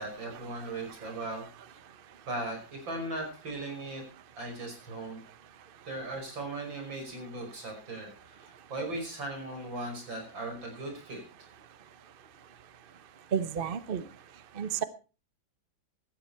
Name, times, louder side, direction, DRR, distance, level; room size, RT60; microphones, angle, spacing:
voice 1, 0.0-1.4 2.3-4.1 4.4-5.2 5.9-11.2, right 2 dB, 75° right, 3 dB, 6.2 m, -38 dB
voice 2, 13.3-14.0 14.6-14.8, right 8 dB, 40° right, 13 dB, 0.8 m, -31 dB
16.5 x 13.0 x 4.3 m, 0.34 s
omnidirectional pair, 2.1 m